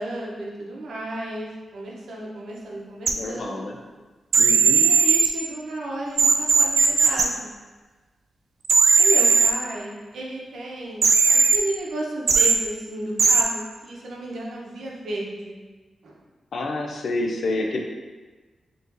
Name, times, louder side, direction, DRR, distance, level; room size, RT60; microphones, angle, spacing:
voice 1, 0.0-3.6 4.7-7.6 9.0-15.6 16.0-16.2, right 1 dB, 85° right, -3 dB, 0.8 m, -33 dB
voice 2, 3.1-3.8 4.4-4.8 16.5-17.8, left 2 dB, 55° left, 2 dB, 0.5 m, -28 dB
sound 1, 3.1-3.2 4.3-5.3 6.2-7.2 8.6-9.5 11.0-11.6 12.3-12.5 13.2-13.4, right 5 dB, 55° right, 0.3 m, -17 dB
4.7 x 3.0 x 2.6 m, 1.3 s
wide cardioid pair, 165°, 0 cm